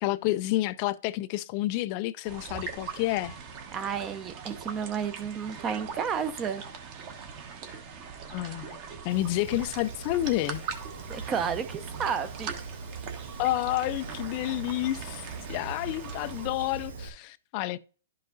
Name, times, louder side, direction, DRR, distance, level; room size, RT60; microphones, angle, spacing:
voice 1, 0.0-3.4 8.3-8.8 9.0-10.6 13.4-17.8, left 16 dB, 35° left, 0.4 m, -29 dB
sound 1, 2.2-16.5, right 6 dB, 35° right, 1.2 m, -41 dB
voice 2, 3.7-6.6 11.1-12.5, right 7 dB, 20° right, 0.7 m, -32 dB
Fire, 9.1-17.1, right 4 dB, 80° right, 1.5 m, -41 dB
11.5 x 5.3 x 2.6 m
hypercardioid pair, 145°, 0 cm